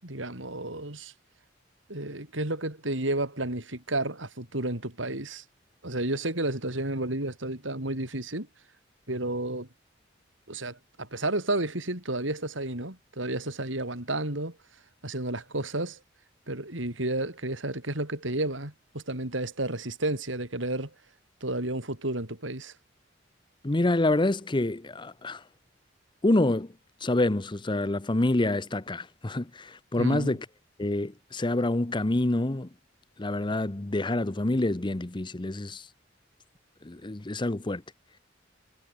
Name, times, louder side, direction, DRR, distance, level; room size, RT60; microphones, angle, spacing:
voice 1, 0.0-1.1 1.9-5.4 5.8-8.5 9.1-9.7 10.5-14.6 15.0-16.0 16.5-20.9 21.4-22.7 29.9-30.4, right 2 dB, 75° right, 5.1 m, -31 dB
voice 2, 23.6-25.4 26.2-26.7 27.0-30.4 30.8-32.7 33.2-35.8 36.8-37.8, left 2 dB, 25° left, 0.8 m, -27 dB
head